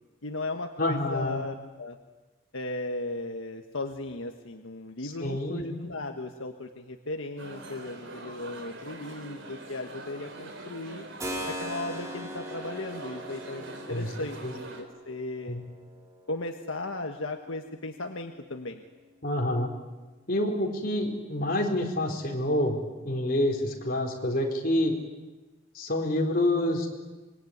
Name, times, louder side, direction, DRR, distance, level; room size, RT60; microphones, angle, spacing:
voice 1, 0.2-2.0 2.5-11.0 11.5-14.4 14.7-15.6 16.3-18.8, left 2 dB, 75° left, 4 dB, 1.5 m, -36 dB
voice 2, 0.8-1.4 5.0-5.8 13.9-14.1 14.4-14.5 15.4-15.6 19.2-19.7 20.3-24.9 25.7-26.9, left 1 dB, 45° left, 1 dB, 4.6 m, -27 dB
sound 1, 7.4-14.8, right 2 dB, 65° right, 4.1 m, -44 dB
Keyboard (musical), 11.2-19.8, equal, 15° right, 3.8 m, -42 dB
25.5 x 23.0 x 9.6 m, 1.2 s
head